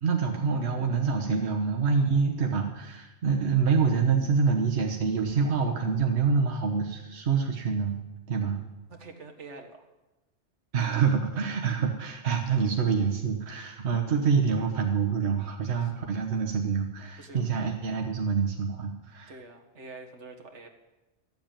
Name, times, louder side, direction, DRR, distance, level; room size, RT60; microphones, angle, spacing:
voice 1, 0.0-7.9 8.3-8.6 10.7-19.3, right 5 dB, 70° right, 2 dB, 1.4 m, -26 dB
voice 2, 8.9-9.9 15.8-15.9 17.2-17.4 19.3-20.7, right 3 dB, 85° right, 4 dB, 1.9 m, -46 dB
13.5 x 7.8 x 9.0 m, 1.0 s
omnidirectional pair, 1.2 m